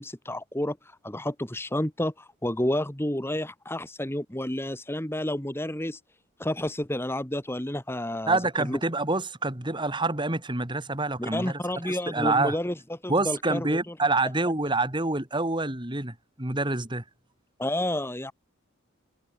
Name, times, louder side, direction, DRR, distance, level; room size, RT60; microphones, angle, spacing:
voice 1, 0.0-6.0 6.4-8.8 11.2-13.9 17.6-18.3, left 1 dB, 10° left, 1.5 m, -30 dB
voice 2, 8.3-12.6 13.1-17.0, right 2 dB, 20° right, 2.2 m, -27 dB
head